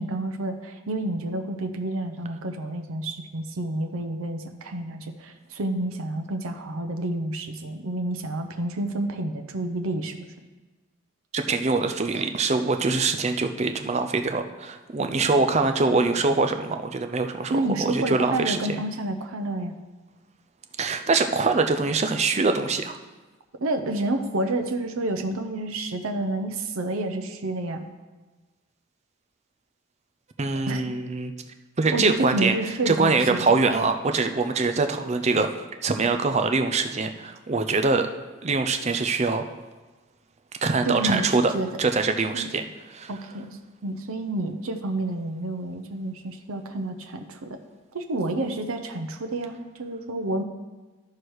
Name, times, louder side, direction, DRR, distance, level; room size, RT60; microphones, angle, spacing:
voice 1, 0.0-10.3 17.5-19.7 23.6-27.8 30.7-30.8 31.9-33.7 40.8-41.7 42.3-42.5 43.1-47.6 47.9-50.4, right 2 dB, 80° right, 5 dB, 0.7 m, -29 dB
voice 2, 11.3-18.8 20.8-23.0 30.4-31.3 31.8-32.5 32.9-38.1 38.4-39.4 40.6-41.5 41.8-42.6 42.9-43.1, right 3 dB, 30° right, 6 dB, 0.5 m, -24 dB
12.5 x 4.8 x 4.7 m, 1.2 s
head